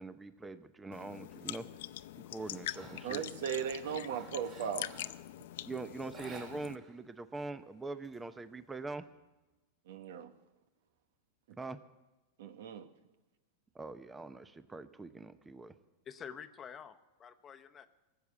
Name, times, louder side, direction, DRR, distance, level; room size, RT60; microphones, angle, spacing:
voice 1, 0.0-1.7 2.2-3.2 5.6-9.0 11.6-11.8 13.7-15.7, right 3 dB, 10° right, 12 dB, 0.7 m, -43 dB
sound 1, 0.9-6.8, left 14 dB, 70° left, 0.5 m, -44 dB
sound 2, 1.1-1.5 1.9-5.3 6.0-7.0 7.3-7.4 7.8-8.7, right 4 dB, 40° right, 3.6 m, -55 dB
voice 2, 3.0-4.9 9.9-10.3 12.4-12.9, right 8 dB, 70° right, 11 dB, 1.1 m, -37 dB
voice 3, 16.1-17.9, left 7 dB, 25° left, 9 dB, 0.9 m, -48 dB
19.0 x 7.3 x 8.3 m, 1.1 s
hypercardioid pair, 120°, 0 cm